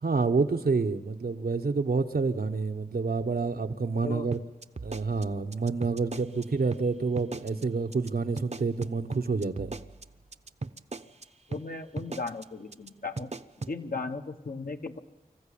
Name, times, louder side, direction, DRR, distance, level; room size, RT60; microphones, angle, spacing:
voice 1, 0.0-4.4 4.8-9.7, right 4 dB, 85° right, 6 dB, 1.1 m, -28 dB
sound 1, 4.3-6.4 6.7-6.8 7.2-7.6 7.9-8.1 8.4-11.2 11.5-11.6 12.0-12.4 12.7-12.9 13.2-13.7, right 3 dB, 50° right, 0.7 m, -37 dB
voice 2, 11.5-13.3 13.7-15.0, left 3 dB, 70° left, 5 dB, 1.4 m, -36 dB
26.0 x 14.5 x 8.6 m, 1.2 s
wide cardioid pair, 60°, 15 cm